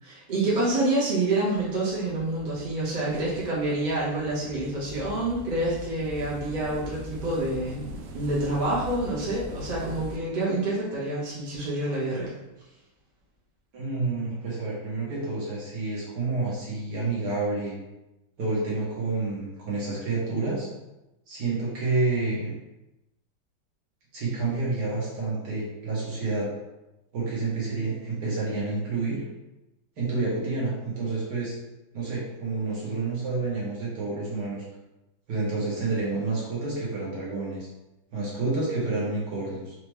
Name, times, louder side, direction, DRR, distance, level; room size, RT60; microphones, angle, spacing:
voice 1, 0.0-7.9 8.1-12.3, right 2 dB, 35° right, -8 dB, 0.8 m, -27 dB
sound 1, 1.5-10.2, left 1 dB, 75° right, 1.2 m, -42 dB
voice 2, 13.7-17.7 18.4-20.7 21.3-22.5 24.1-26.5 27.1-29.2 30.0-31.5 31.9-34.6 35.3-37.7 38.1-39.7, right 3 dB, 55° right, -6 dB, 1.5 m, -29 dB
4.4 x 2.5 x 3.1 m, 0.96 s
omnidirectional pair, 2.4 m